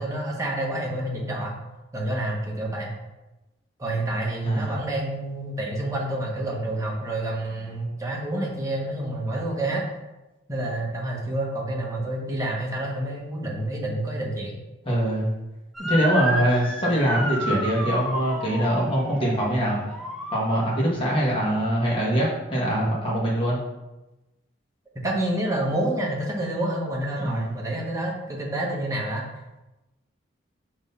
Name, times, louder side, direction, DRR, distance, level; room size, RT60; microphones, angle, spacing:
voice 1, 0.0-1.5 1.9-2.9 3.8-9.8 10.5-14.6 24.9-29.3, right 1 dB, 15° right, -2 dB, 1.1 m, -28 dB
voice 2, 4.4-4.8 14.8-15.3 15.9-19.8 20.3-23.6 27.2-27.6, equal, 25° left, -5 dB, 1.5 m, -23 dB
Motor vehicle (road) / Siren, 15.7-21.0, equal, ahead, 0.6 m, -31 dB
6.2 x 3.1 x 5.4 m, 1.0 s
head